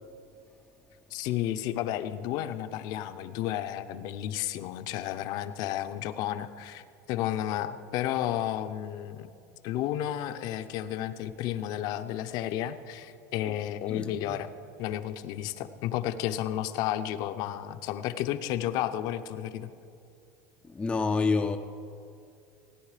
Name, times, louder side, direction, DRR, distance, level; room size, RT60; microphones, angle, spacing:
voice 1, 1.1-9.3 9.6-14.5 14.8-19.7, left 12 dB, 55° left, 0.7 m, -32 dB
voice 2, 13.9-14.4 20.6-21.6, left 4 dB, 10° left, 0.5 m, -28 dB
17.0 x 9.6 x 4.9 m
supercardioid pair, 125°, 8 cm